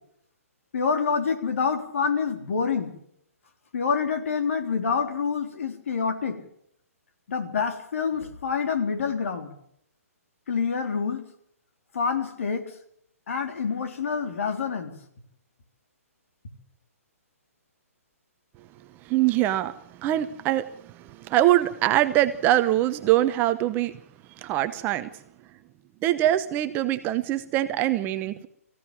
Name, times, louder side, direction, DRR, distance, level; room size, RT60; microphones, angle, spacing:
voice 1, 0.7-2.9 3.7-6.4 7.3-9.5 10.5-11.3 11.9-12.8 13.3-14.9, left 5 dB, 60° left, 6 dB, 3.8 m, -27 dB
voice 2, 19.0-23.9 24.4-25.1 26.0-28.5, right 14 dB, 25° right, 11 dB, 0.9 m, -23 dB
24.0 x 15.5 x 7.5 m, 0.70 s
figure-of-eight pair, 135°, 8 cm